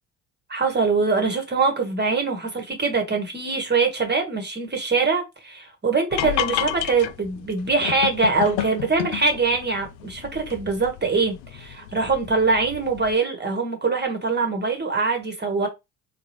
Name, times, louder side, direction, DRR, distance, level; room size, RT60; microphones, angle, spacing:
voice 1, 0.5-15.7, right 4 dB, 20° right, 1.4 m, -23 dB
sound 1, 6.1-13.1, left 12 dB, 60° left, 0.5 m, -31 dB
3.8 x 2.4 x 3.1 m
hypercardioid pair, 55°, 46 cm